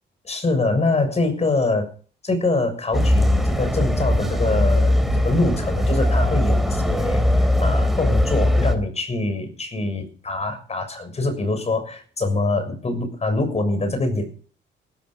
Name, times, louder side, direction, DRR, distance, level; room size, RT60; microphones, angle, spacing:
voice 1, 0.2-1.9 2.2-14.3, left 2 dB, 35° left, 9 dB, 6.8 m, -24 dB
sound 1, 2.9-8.8, left 1 dB, ahead, 3.4 m, -20 dB
16.0 x 14.5 x 5.5 m, 0.41 s
cardioid pair, 90°, 20 cm